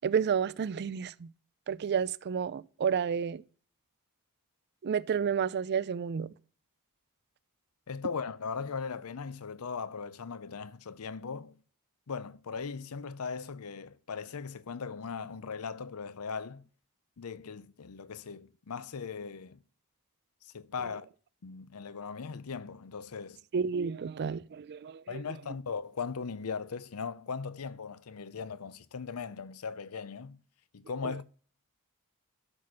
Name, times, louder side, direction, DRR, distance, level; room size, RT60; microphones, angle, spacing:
voice 1, 0.0-1.3 1.7-3.4 4.8-6.3 23.5-25.2 31.0-31.1, right 7 dB, 50° right, 0.4 m, -31 dB
voice 2, 7.9-11.6 12.1-16.6 17.2-19.6 20.4-21.1 21.4-23.4 25.1-30.4 30.7-31.2, left 5 dB, 75° left, 0.6 m, -39 dB
12.5 x 4.2 x 6.3 m
head